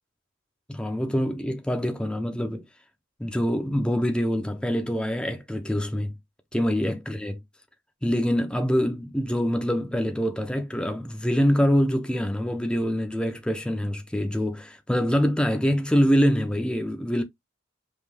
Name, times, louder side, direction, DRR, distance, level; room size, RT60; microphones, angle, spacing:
voice 1, 0.7-2.6 3.2-6.2 6.5-7.4 8.0-17.2, equal, 5° left, 0.5 m, -25 dB
5.3 x 2.2 x 3.2 m
head